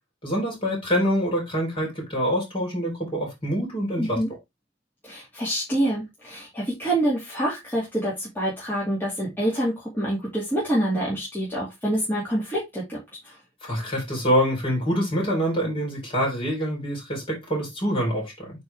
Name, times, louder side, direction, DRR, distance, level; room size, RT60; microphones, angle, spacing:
voice 1, 0.2-4.2 13.6-18.5, equal, 25° left, 3.9 m, -25 dB
voice 2, 4.0-4.3 5.0-13.0 13.2-13.4, right 1 dB, 10° left, 2.3 m, -26 dB
8.5 x 3.9 x 3.4 m
head